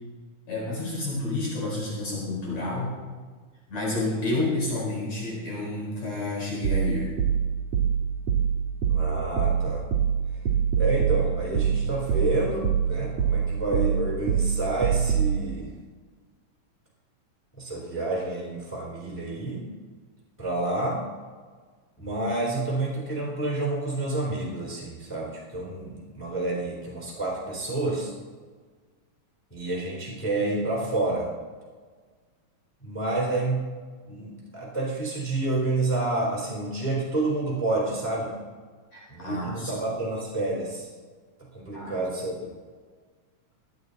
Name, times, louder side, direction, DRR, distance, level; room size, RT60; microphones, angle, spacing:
voice 1, 0.5-2.9 3.7-7.1 38.9-39.7 41.7-41.9, left 2 dB, 60° left, -5 dB, 5.6 m, -30 dB
sound 1, 6.6-15.4, right 8 dB, 55° right, 2.9 m, -24 dB
voice 2, 8.9-9.9 10.8-15.7 17.6-19.7 20.4-21.1 22.0-28.1 29.5-31.3 32.8-33.7 34.0-38.4 39.1-40.9 41.5-42.5, right 2 dB, 5° left, -3 dB, 3.6 m, -29 dB
23.0 x 8.6 x 4.1 m, 1.5 s
omnidirectional pair, 3.4 m